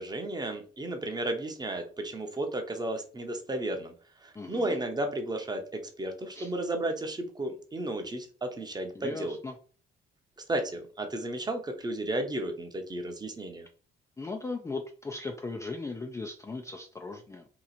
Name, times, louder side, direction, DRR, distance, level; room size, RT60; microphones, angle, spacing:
voice 1, 0.0-3.9 4.2-9.4 10.5-13.7, right 1 dB, 20° right, 4 dB, 0.8 m, -33 dB
voice 2, 4.3-4.8 6.3-6.5 8.9-9.6 14.2-17.5, left 3 dB, 15° left, 3 dB, 0.4 m, -38 dB
2.9 x 2.4 x 4.0 m, 0.41 s
cardioid pair, 90°, 20 cm